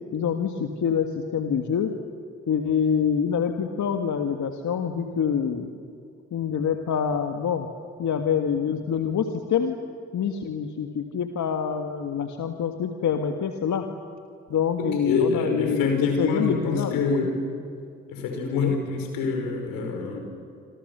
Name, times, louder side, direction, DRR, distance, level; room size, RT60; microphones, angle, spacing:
voice 1, 0.1-1.9 2.5-5.7 6.3-7.7 8.0-9.7 10.1-13.9 14.5-17.3 18.5-18.7, left 7 dB, 60° left, 5 dB, 1.8 m, -26 dB
voice 2, 14.8-17.5 18.1-20.2, left 4 dB, 80° left, 4 dB, 5.1 m, -26 dB
27.5 x 26.5 x 6.9 m, 2.3 s
hypercardioid pair, 45°, 34 cm